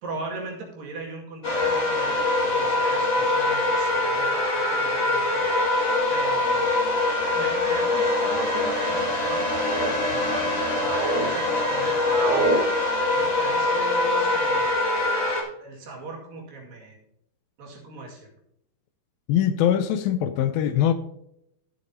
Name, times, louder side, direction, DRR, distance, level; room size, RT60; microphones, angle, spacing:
voice 1, 0.0-5.5 6.1-6.9 7.4-9.5 9.8-12.5 13.1-14.8 15.4-17.0 17.6-18.3, right 2 dB, 65° right, 3.8 m, -38 dB
sound 1, 1.4-15.4, left 2 dB, 25° left, 1.3 m, -23 dB
sound 2, 5.7-5.9 6.9-7.3 8.1-8.6 9.2-9.9 10.4-11.3 11.5-12.6, right 3 dB, 80° right, 4.3 m, -30 dB
voice 2, 19.3-20.9, left 10 dB, 80° left, 2.3 m, -22 dB
14.5 x 8.2 x 2.8 m
omnidirectional pair, 4.5 m